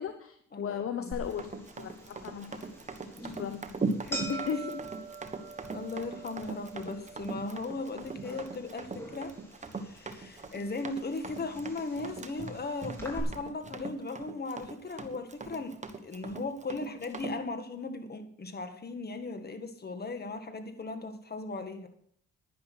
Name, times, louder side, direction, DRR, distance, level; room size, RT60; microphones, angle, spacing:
voice 1, 0.0-2.6 3.3-3.8 4.3-4.8, left 7 dB, 50° left, 9 dB, 1.0 m, -36 dB
voice 2, 0.5-1.2 4.0-4.3 5.7-9.3 9.7-21.9, left 3 dB, 30° left, 8 dB, 1.8 m, -37 dB
sound 1, 1.1-13.2, right 2 dB, 10° left, 4.6 m, -45 dB
Run, 1.3-17.4, right 3 dB, 25° right, 1.3 m, -40 dB
10.5 x 10.5 x 6.0 m, 0.65 s
cardioid pair, 90°, 30 cm